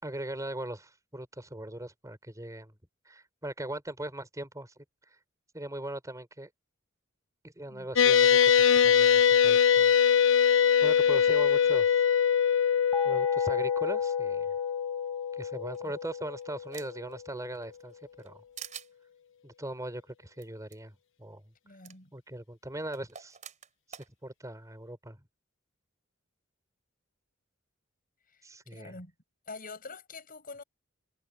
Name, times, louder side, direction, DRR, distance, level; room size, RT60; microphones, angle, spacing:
voice 1, 0.0-2.7 3.0-4.8 5.5-6.5 7.4-8.5 8.8-9.9 10.8-12.0 13.0-14.5 15.3-18.4 19.4-21.4 22.1-23.4 24.2-25.2 28.4-29.0, right 1 dB, 15° right, 5.1 m, -40 dB
sound 1, 8.0-16.6, left 8 dB, 65° left, 1.2 m, -23 dB
sound 2, 12.9-15.9, left 2 dB, 10° left, 7.8 m, -40 dB
sound 3, 15.7-17.1 17.6-18.3 18.6-18.9 20.4-20.5 20.7-20.8 21.8-22.0 22.9-24.1, right 8 dB, 40° right, 3.5 m, -46 dB
voice 2, 21.6-22.1 28.3-28.4 28.7-29.1 29.5-30.6, left 3 dB, 45° left, 7.9 m, -45 dB
head